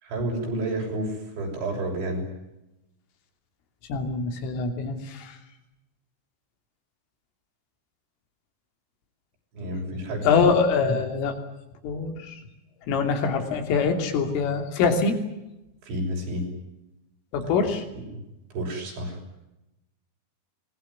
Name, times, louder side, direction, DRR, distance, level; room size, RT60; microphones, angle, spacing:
voice 1, 0.0-2.3 9.5-10.4 10.8-10.9 15.8-16.5 17.4-17.5 17.9-18.0 18.5-19.2, right 1 dB, 65° right, 0 dB, 8.7 m, -30 dB
voice 2, 3.9-5.4 10.3-11.3 11.8-12.4 12.9-15.2 17.3-17.8, left 5 dB, 80° left, 6 dB, 5.4 m, -24 dB
24.0 x 20.5 x 9.5 m, 0.93 s
omnidirectional pair, 5.7 m